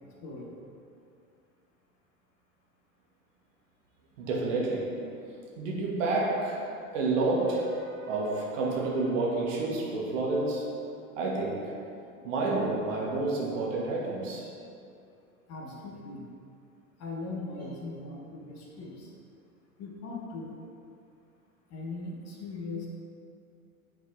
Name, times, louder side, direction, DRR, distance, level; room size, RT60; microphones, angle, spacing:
voice 1, 0.0-0.5 15.5-16.3 17.0-19.1 19.8-20.6 21.7-22.9, left 3 dB, 35° left, -2 dB, 1.3 m, -39 dB
voice 2, 4.2-5.1 5.6-6.7 6.9-10.7 11.2-11.7 12.2-14.5, right 3 dB, 60° right, -3 dB, 1.6 m, -29 dB
8.3 x 4.1 x 3.9 m, 2.5 s
figure-of-eight pair, 85°, 43 cm